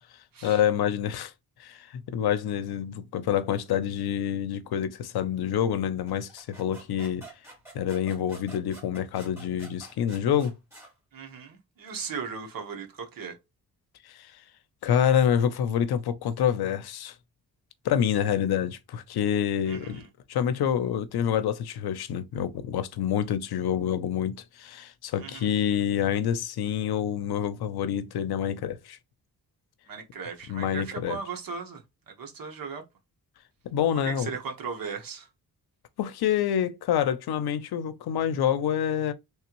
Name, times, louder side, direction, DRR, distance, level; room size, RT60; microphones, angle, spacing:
voice 1, 0.4-1.3 1.6-7.3 7.7-10.6 14.0-14.3 14.8-17.1 17.8-20.0 20.3-29.0 30.5-31.2 33.6-34.3 36.0-39.1, left 9 dB, 80° left, 0.6 m, -27 dB
sound 1, 6.1-10.9, right 2 dB, 5° right, 2.4 m, -48 dB
voice 2, 11.1-13.4 19.6-20.1 25.2-25.5 29.9-32.8 34.0-35.3, right 5 dB, 65° right, 1.2 m, -37 dB
3.4 x 3.4 x 3.0 m
wide cardioid pair, 140°, 37 cm